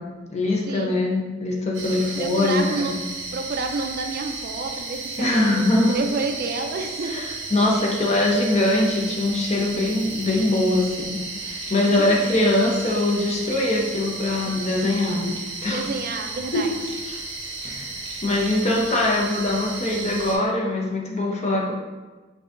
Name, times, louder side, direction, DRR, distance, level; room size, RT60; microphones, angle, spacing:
voice 1, 0.0-2.9 5.2-6.0 7.1-15.3 15.6-15.8 16.5-16.6 17.0-17.2 17.6-17.9 18.2-21.7, left 1 dB, 35° left, -2 dB, 0.7 m, -22 dB
voice 2, 0.7-1.0 1.9-3.0 3.3-7.3 7.7-7.8 11.9-12.3 15.7-16.7, right 3 dB, 50° right, 4 dB, 0.4 m, -30 dB
sound 1, 1.7-20.4, right 3 dB, 80° right, 0.7 m, -34 dB
5.5 x 2.7 x 2.5 m, 1.3 s
head